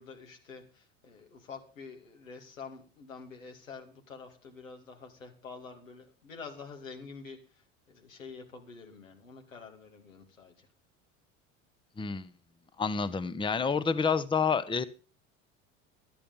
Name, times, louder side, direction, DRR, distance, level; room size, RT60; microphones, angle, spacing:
voice 1, 0.0-10.7, left 5 dB, 90° left, 2 dB, 2.5 m, -47 dB
voice 2, 12.0-12.3 12.8-14.8, left 5 dB, 15° left, 15 dB, 0.8 m, -28 dB
12.5 x 10.5 x 5.4 m, 0.38 s
hypercardioid pair, 75°, 38 cm